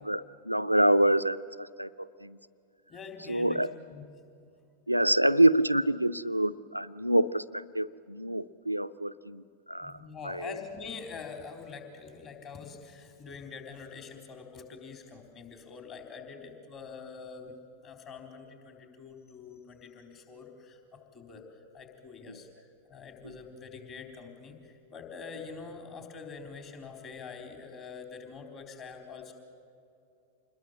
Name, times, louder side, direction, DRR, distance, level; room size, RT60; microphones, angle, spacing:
voice 1, 0.0-2.4 3.3-3.8 4.9-10.0 10.2-10.5 22.3-22.4 23.2-23.3, right 1 dB, 90° right, 13 dB, 0.5 m, -27 dB
voice 2, 2.9-4.0 9.8-17.5 17.8-20.8 21.1-21.4 21.7-29.3, left 5 dB, 30° left, 3 dB, 4.0 m, -45 dB
27.0 x 21.0 x 7.7 m, 2.5 s
figure-of-eight pair, 90°, 0 cm